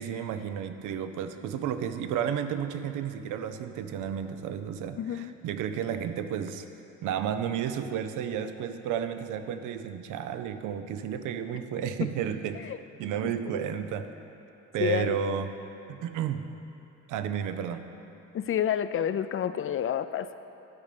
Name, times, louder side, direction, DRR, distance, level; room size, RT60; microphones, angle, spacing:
voice 1, 0.0-6.7 7.0-12.7 13.0-14.1 14.7-15.6 15.9-16.5 17.1-17.9, right 8 dB, 90° right, 9 dB, 0.6 m, -32 dB
voice 2, 5.0-5.3 12.0-12.1 12.6-12.8 13.2-13.7 14.8-15.2 18.3-20.3, left 9 dB, 45° left, 12 dB, 0.4 m, -29 dB
12.5 x 5.4 x 6.7 m, 2.9 s
cardioid pair, 90°, 30 cm